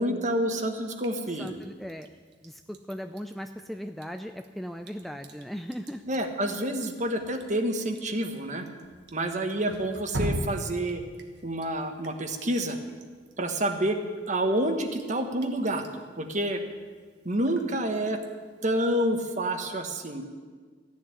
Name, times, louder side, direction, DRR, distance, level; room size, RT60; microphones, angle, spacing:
voice 1, 0.0-1.5 6.1-8.7 9.1-11.0 11.4-12.8 13.4-14.0 14.3-16.6 17.2-18.2 18.6-20.2, right 1 dB, 40° right, 5 dB, 1.4 m, -28 dB
Drip, 0.5-18.8, right 1 dB, 65° right, 1.4 m, -43 dB
voice 2, 1.4-2.1 2.4-6.0, equal, ahead, 5 dB, 0.4 m, -38 dB
15.5 x 7.5 x 10.0 m, 1.5 s
head